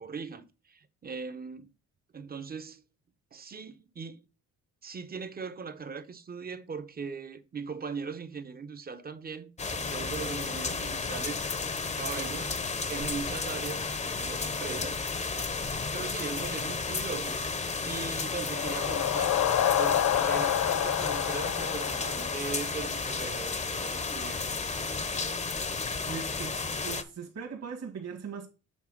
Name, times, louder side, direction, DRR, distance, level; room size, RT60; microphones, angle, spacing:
voice 1, 0.0-1.7 2.1-2.8 3.3-4.2 4.8-11.4 11.9-15.0 15.9-19.4 19.7-24.5 25.0-25.1, right 5 dB, 30° right, 0.8 m, -40 dB
sound 1, 9.6-27.0, left 4 dB, 25° left, 0.8 m, -33 dB
sound 2, 18.1-23.0, left 10 dB, 65° left, 0.6 m, -29 dB
voice 2, 26.1-28.5, right 6 dB, 55° right, 1.8 m, -40 dB
7.4 x 3.4 x 5.8 m
cardioid pair, 90°, 30 cm